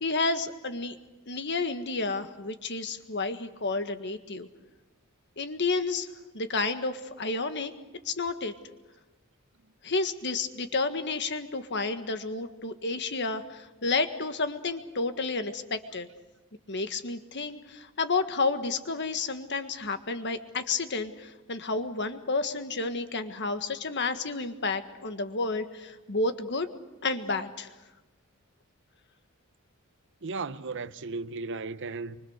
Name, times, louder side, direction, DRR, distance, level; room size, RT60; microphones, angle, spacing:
voice 1, 0.0-1.0 1.3-4.5 5.4-6.1 6.3-7.7 8.0-8.5 9.8-16.1 16.7-26.7 27.0-27.7, left 3 dB, 55° left, 1.6 m, -31 dB
voice 2, 30.2-32.2, right 3 dB, 60° right, 0.8 m, -35 dB
25.0 x 24.5 x 6.6 m
head